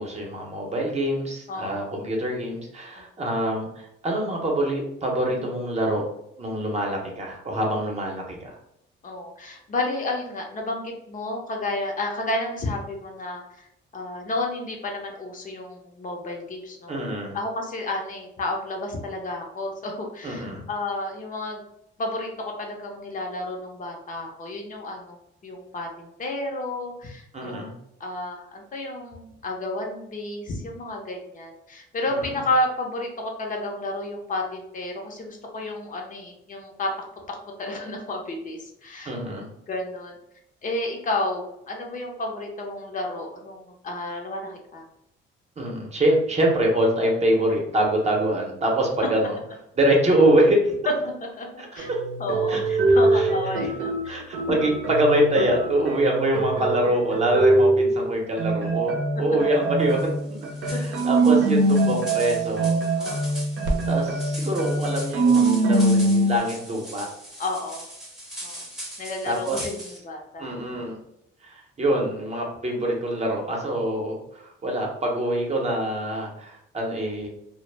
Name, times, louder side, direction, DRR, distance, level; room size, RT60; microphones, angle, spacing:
voice 1, 0.0-6.1 6.4-8.5 16.9-17.4 20.2-20.6 27.3-27.7 32.1-32.3 39.0-39.5 45.6-49.4 49.8-50.7 51.6-52.0 52.5-52.6 53.1-53.3 54.1-62.7 63.9-67.1 69.2-69.6 70.4-71.0 71.4-77.3, right 1 dB, 35° right, 0 dB, 0.7 m, -25 dB
voice 2, 1.5-1.8 3.0-3.1 5.3-5.5 9.0-13.7 13.9-17.0 17.3-21.6 22.0-27.7 28.0-36.9 37.3-39.1 39.7-40.1 40.6-44.8 49.0-49.1 51.0-51.5 51.7-51.9 52.2-54.3 60.7-61.0 63.0-63.4 67.4-67.8 68.4-68.7 69.0-70.4, left 2 dB, 40° left, 1 dB, 0.6 m, -31 dB
sound 1, 51.8-58.0 58.4-66.4, right 2 dB, 70° right, 0.6 m, -23 dB
sound 2, 59.9-70.0, equal, ahead, 0.7 m, -40 dB
2.1 x 2.0 x 3.2 m, 0.78 s
cardioid pair, 90°, 20 cm